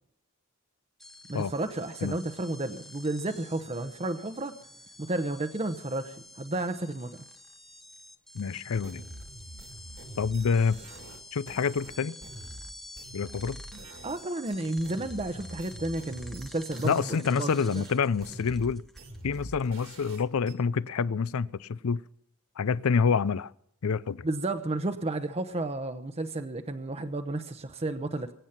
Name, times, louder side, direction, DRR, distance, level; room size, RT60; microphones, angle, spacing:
sound 1, 1.0-20.1, left 1 dB, ahead, 0.9 m, -50 dB
voice 1, 1.3-4.6 5.0-7.2 14.0-17.5 17.7-17.8 24.2-28.3, right 2 dB, 30° right, 0.8 m, -32 dB
voice 2, 8.3-9.0 10.2-10.8 11.3-12.1 13.1-13.6 16.8-18.8 19.2-22.0 22.6-23.5 23.8-24.2, left 5 dB, 80° left, 0.5 m, -27 dB
sound 2, 8.8-14.2 14.5-17.2 17.5-20.5, right 1 dB, 60° right, 2.1 m, -45 dB
23.0 x 9.0 x 5.7 m
head